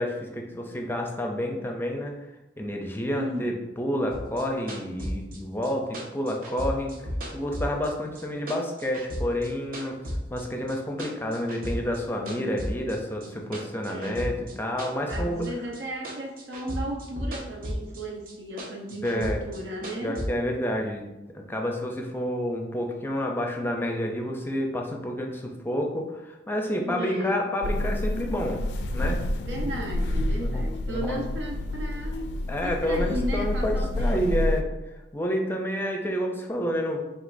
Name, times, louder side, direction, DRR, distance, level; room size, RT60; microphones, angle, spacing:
voice 1, 0.0-2.2 2.6-7.1 7.3-10.0 10.3-15.5 19.0-19.4 20.0-21.1 21.3-28.7 28.9-29.2 30.4-30.6 30.9-31.2 32.5-34.6 35.1-37.0, equal, 15° left, 2 dB, 0.5 m, -29 dB
voice 2, 3.2-3.6 13.9-14.5 15.1-20.2 26.8-27.4 29.4-32.3 32.6-34.6, equal, 85° right, 0 dB, 0.8 m, -35 dB
sound 1, 4.1-8.2 8.5-10.4 10.7-12.0 12.3-18.0 18.3-20.3, equal, 55° right, 0.8 m, -34 dB
sound 2, 27.6-34.6, left 1 dB, 70° left, 0.4 m, -28 dB
5.1 x 3.3 x 2.6 m, 1.0 s
head